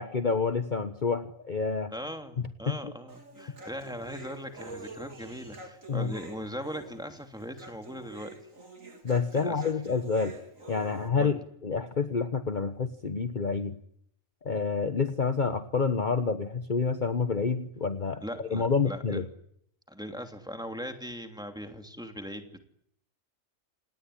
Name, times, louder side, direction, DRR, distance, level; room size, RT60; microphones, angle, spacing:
voice 1, 0.0-1.9 2.4-2.9 5.9-6.1 9.0-10.3 10.7-13.7 14.4-19.2, left 5 dB, 40° left, 9 dB, 1.3 m, -28 dB
voice 2, 1.9-8.3 9.3-10.0 11.2-11.4 18.2-19.2 19.9-22.6, equal, 5° right, 5 dB, 2.8 m, -40 dB
Human voice, 3.1-11.1, right 3 dB, 90° right, 4.3 m, -46 dB
28.0 x 19.0 x 10.0 m, 0.72 s
omnidirectional pair, 1.4 m